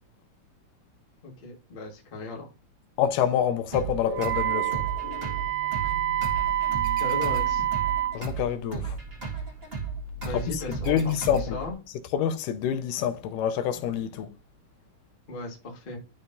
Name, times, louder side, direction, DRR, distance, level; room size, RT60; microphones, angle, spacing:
voice 1, 1.2-2.5 7.0-7.7 10.2-11.8 15.3-16.0, left 2 dB, 40° left, 0.7 m, -37 dB
voice 2, 3.0-4.8 8.1-9.0 10.3-11.6 12.1-14.3, left 9 dB, 80° left, 2.1 m, -27 dB
sound 1, 3.7-11.7, right 3 dB, 25° right, 1.3 m, -35 dB
sound 2, 4.0-8.6, left 3 dB, 60° left, 2.1 m, -44 dB
Wind instrument woodwind instrument, 4.1-8.2, right 14 dB, 80° right, 2.0 m, -27 dB
11.5 x 4.5 x 2.6 m
omnidirectional pair, 3.8 m